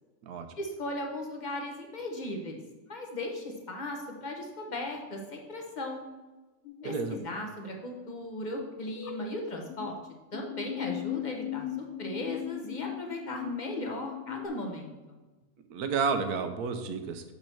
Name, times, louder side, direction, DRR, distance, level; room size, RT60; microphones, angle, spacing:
voice 1, 0.6-2.6 2.9-6.0 6.8-10.0 10.3-15.2, left 1 dB, 30° left, 2 dB, 1.1 m, -37 dB
sound 1, 6.6-7.2 9.0-9.9 10.3-14.5, left 15 dB, 65° left, 0.7 m, -38 dB
voice 2, 6.8-7.2 15.7-17.2, right 5 dB, 75° right, 7 dB, 1.2 m, -31 dB
6.6 x 5.5 x 4.5 m, 1.2 s
omnidirectional pair, 1.6 m